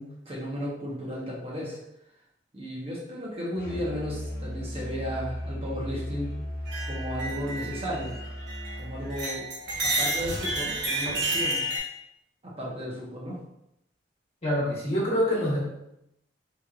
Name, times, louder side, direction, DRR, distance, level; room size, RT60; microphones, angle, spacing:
voice 1, 0.0-1.8 2.5-6.3 6.8-8.2 8.8-9.5 9.8-11.7 12.4-13.4, equal, 35° right, -5 dB, 0.9 m, -34 dB
Musical instrument, 3.6-9.2, equal, 60° left, 0.8 m, -36 dB
sound 1, 6.7-8.8 9.1-11.8, right 1 dB, 65° right, 1.4 m, -30 dB
voice 2, 14.4-15.6, equal, 35° left, -6 dB, 1.3 m, -25 dB
4.3 x 3.0 x 2.4 m, 0.81 s
head